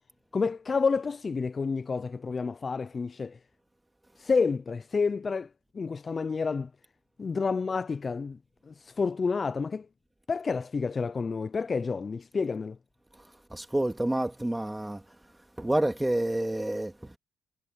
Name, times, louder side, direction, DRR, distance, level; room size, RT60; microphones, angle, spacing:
voice 1, 0.3-3.4 4.2-5.5 5.7-6.7 7.2-8.4 8.7-9.9 10.3-12.8, left 4 dB, 35° left, 0.5 m, -29 dB
voice 2, 13.5-15.0 15.6-17.2, right 1 dB, 10° right, 2.5 m, -28 dB
cardioid pair, 90°, 0 cm